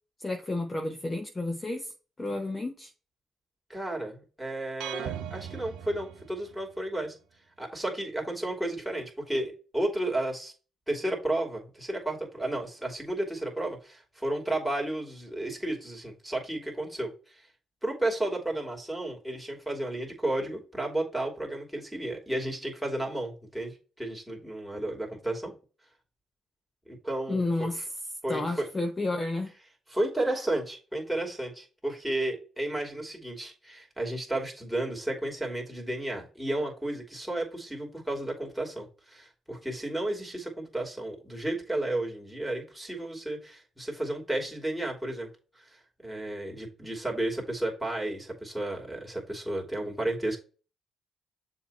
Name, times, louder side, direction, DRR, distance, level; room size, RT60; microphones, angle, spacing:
voice 1, 0.2-2.9 27.3-27.8 28.3-29.5, left 2 dB, 20° left, 1.0 m, -31 dB
voice 2, 3.7-7.2 7.6-10.5 10.9-17.5 17.8-25.5 26.9-27.7 28.2-28.7 29.9-45.3 45.5-50.4, right 1 dB, ahead, 2.8 m, -33 dB
sound 1, 4.8-6.8, right 10 dB, 85° right, 0.8 m, -39 dB
7.1 x 3.0 x 5.5 m
cardioid pair, 90°, 0 cm